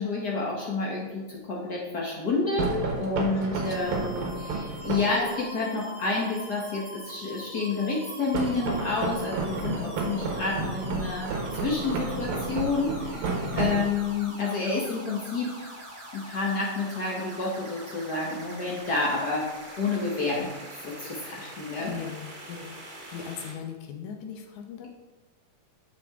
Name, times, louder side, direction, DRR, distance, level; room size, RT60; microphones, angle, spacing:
voice 1, 0.0-11.3 11.6-15.7 16.1-19.5 19.8-22.0, left 3 dB, 60° left, -3 dB, 1.1 m, -29 dB
sound 1, 2.6-5.2 8.3-14.2, right 3 dB, 60° right, 1.7 m, -31 dB
voice 2, 3.3-3.8 4.5-4.8 9.7-10.1 13.5-13.9 21.8-22.8 23.1-24.9, left 7 dB, 85° left, 4 dB, 2.4 m, -39 dB
sound 2, 3.6-23.5, equal, 30° right, 0.9 m, -44 dB
8.5 x 6.5 x 3.6 m, 1.1 s
omnidirectional pair, 3.4 m